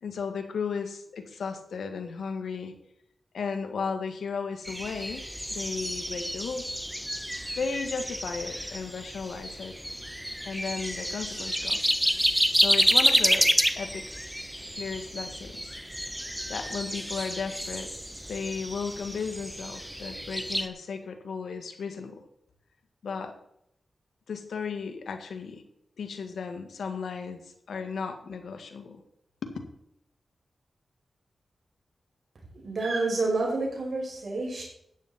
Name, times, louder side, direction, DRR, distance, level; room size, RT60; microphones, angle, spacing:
voice 1, 0.0-2.7 3.3-5.2 5.5-6.6 7.6-9.8 10.4-11.8 12.6-13.5 13.8-14.1 14.7-15.8 16.5-17.9 18.3-22.2 23.0-23.3 24.3-25.6 26.0-27.4 27.7-29.0 29.4-29.5, left 5 dB, 85° left, 6 dB, 1.9 m, -35 dB
sound 1, 4.6-20.7, equal, 5° right, 1.2 m, -29 dB
voice 2, 32.6-34.6, right 3 dB, 60° right, -1 dB, 5.3 m, -28 dB
13.5 x 9.6 x 4.3 m, 0.74 s
cardioid pair, 55°, 0 cm